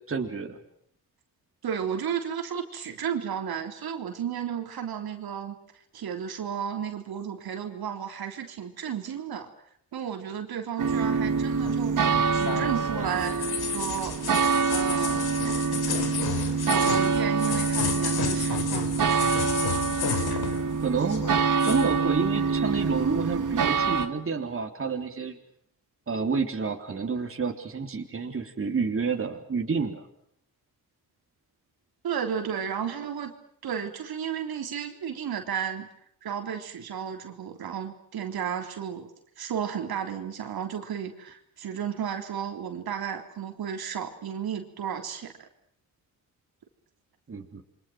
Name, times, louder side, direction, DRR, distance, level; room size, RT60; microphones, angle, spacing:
voice 1, 0.1-0.6 20.8-21.3 21.6-25.4 26.1-30.0 47.3-47.6, right 5 dB, 35° right, 3 dB, 3.6 m, -29 dB
voice 2, 1.6-5.6 5.9-9.5 9.9-13.4 13.7-14.2 14.7-15.2 16.6-19.2 32.0-33.3 33.6-35.9 36.2-39.1 39.4-45.3, right 8 dB, 70° right, 4 dB, 3.7 m, -33 dB
sound 1, 10.8-24.1, right 5 dB, 55° right, 2.3 m, -26 dB
sound 2, 11.7-20.8 21.0-21.9, left 7 dB, 70° left, 4.1 m, -32 dB
29.5 x 24.5 x 6.2 m, 0.67 s
cardioid pair, 95°, 38 cm